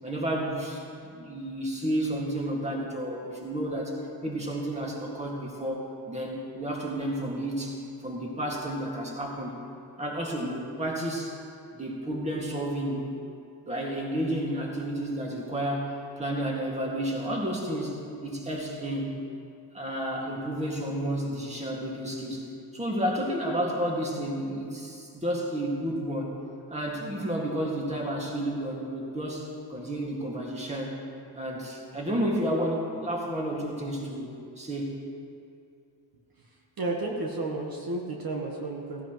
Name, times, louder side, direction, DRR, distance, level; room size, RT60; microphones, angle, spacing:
voice 1, 0.0-4.0 4.2-9.6 10.0-11.3 11.7-13.1 13.7-19.1 19.7-22.5 22.7-26.4 26.7-31.0 31.3-35.0, right 1 dB, 15° right, -2 dB, 2.0 m, -31 dB
voice 2, 36.4-39.1, right 2 dB, 50° right, -1 dB, 1.4 m, -33 dB
16.0 x 16.0 x 3.1 m, 2.4 s
wide cardioid pair, 140°, 44 cm